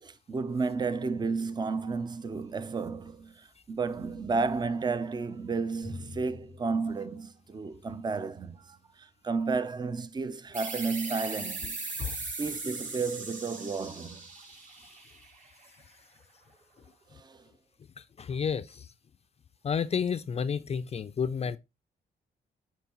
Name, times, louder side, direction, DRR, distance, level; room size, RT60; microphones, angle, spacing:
voice 1, 0.0-11.8 12.1-14.2 17.1-17.4, right 4 dB, 25° right, 0.6 m, -32 dB
Drum, 5.8-8.2, left 2 dB, 85° right, 3.6 m, -47 dB
sound 1, 10.5-15.8, right 3 dB, 50° right, 2.7 m, -39 dB
voice 2, 18.0-18.9 19.6-21.6, left 6 dB, 40° left, 0.4 m, -31 dB
9.0 x 4.5 x 3.0 m
cardioid pair, 90°, 17 cm